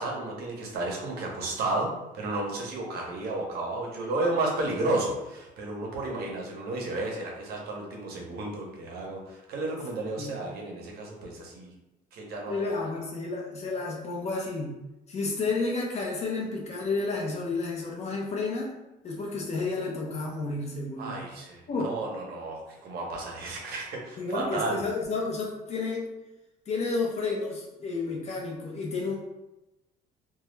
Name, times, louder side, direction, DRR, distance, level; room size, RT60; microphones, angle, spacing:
voice 1, 0.0-1.9 2.1-11.7 12.1-12.8 21.0-24.8, right 2 dB, 65° right, -1 dB, 0.7 m, -32 dB
voice 2, 12.5-14.8 15.1-18.8 19.0-21.2 21.7-21.9 24.2-26.1 26.7-29.2, left 3 dB, 40° left, -1 dB, 0.4 m, -31 dB
2.2 x 2.0 x 3.1 m, 0.99 s
cardioid pair, 110°, 17 cm